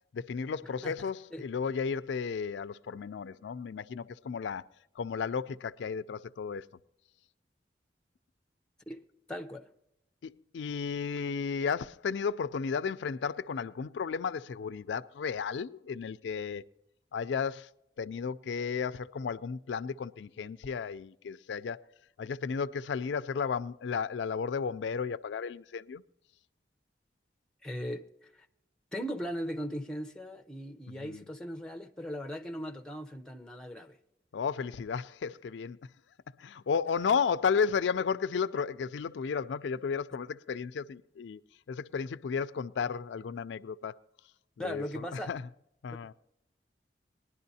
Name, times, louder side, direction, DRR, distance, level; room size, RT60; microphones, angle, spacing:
voice 1, 0.1-4.7 5.0-6.6 10.2-16.6 17.1-17.7 18.0-21.8 22.2-26.0 30.9-31.2 34.3-35.8 36.4-41.4 41.7-43.9 44.6-45.4 45.8-46.1, left 6 dB, 85° left, 0.4 m, -33 dB
voice 2, 0.8-1.4 8.9-9.7 27.6-28.5 28.9-34.0 44.6-45.3 45.9-46.1, equal, 5° left, 0.6 m, -39 dB
19.5 x 11.0 x 2.7 m
head